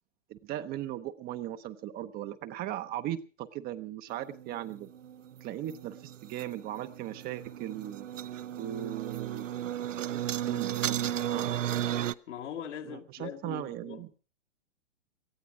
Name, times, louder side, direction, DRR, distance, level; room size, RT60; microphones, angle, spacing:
voice 1, 0.3-4.9 5.4-8.1 8.6-9.6 10.0-11.6 12.8-14.1, right 12 dB, 25° right, 0.7 m, -38 dB
sound 1, 4.2-12.1, right 11 dB, 80° right, 0.7 m, -35 dB
voice 2, 12.3-14.2, left 9 dB, 70° left, 1.9 m, -41 dB
18.5 x 13.5 x 4.9 m
hypercardioid pair, 120°, 37 cm